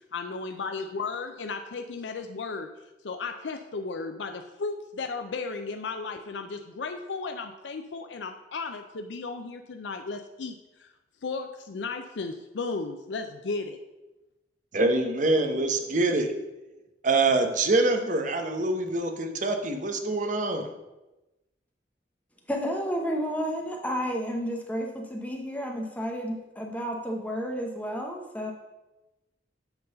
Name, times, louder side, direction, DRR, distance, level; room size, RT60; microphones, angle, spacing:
voice 1, 0.1-2.7 3.0-10.9 11.2-13.8, left 4 dB, 85° left, 5 dB, 0.5 m, -35 dB
voice 2, 14.7-16.3 17.0-20.7, right 2 dB, 45° right, 6 dB, 0.9 m, -25 dB
voice 3, 22.5-28.5, equal, 10° left, 1 dB, 0.8 m, -31 dB
8.0 x 3.9 x 6.6 m, 1.0 s
head